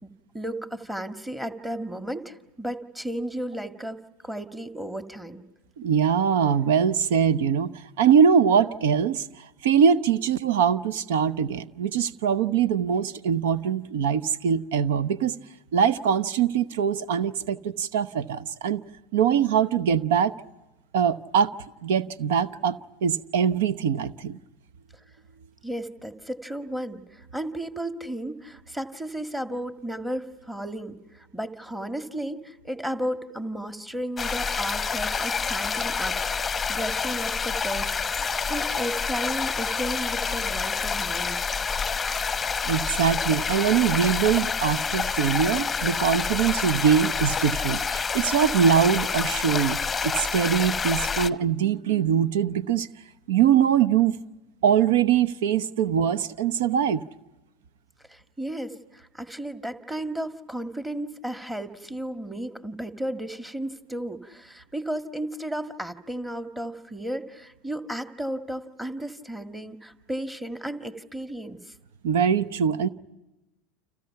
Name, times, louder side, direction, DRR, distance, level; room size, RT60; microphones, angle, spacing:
voice 1, 0.0-5.4 25.6-38.0 38.2-41.4 58.1-71.7, right 1 dB, 5° right, 1.8 m, -34 dB
voice 2, 5.8-15.3 15.7-18.8 19.1-20.3 20.9-21.5 21.8-24.4 42.6-52.9 53.3-54.2 54.6-57.0 72.0-72.9, right 7 dB, 70° right, 0.9 m, -22 dB
sound 1, 34.2-51.3, left 5 dB, 20° left, 0.9 m, -28 dB
30.0 x 27.5 x 5.8 m
hypercardioid pair, 80°, 0 cm